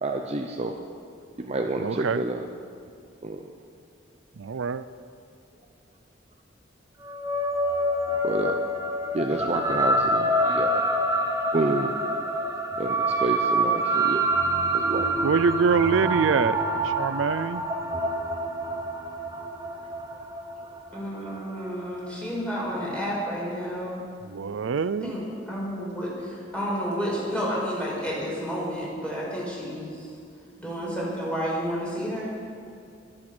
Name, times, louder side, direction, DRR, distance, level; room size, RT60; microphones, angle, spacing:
voice 1, 0.0-0.7 1.4-2.4 3.2-3.4 8.2-8.6 9.1-10.8 11.5-11.9 12.8-14.3 14.7-15.1 21.0-21.1, right 2 dB, 35° right, 3 dB, 0.7 m, -29 dB
voice 2, 1.8-2.2 4.4-4.8 15.2-17.6 24.3-25.1, right 5 dB, 90° right, 14 dB, 0.4 m, -25 dB
sound 1, 7.0-21.7, right 1 dB, 15° right, 1.2 m, -26 dB
voice 3, 20.9-24.0 25.0-30.1 30.6-32.3, equal, 5° left, -5 dB, 5.0 m, -31 dB
22.5 x 8.9 x 6.1 m, 2.4 s
head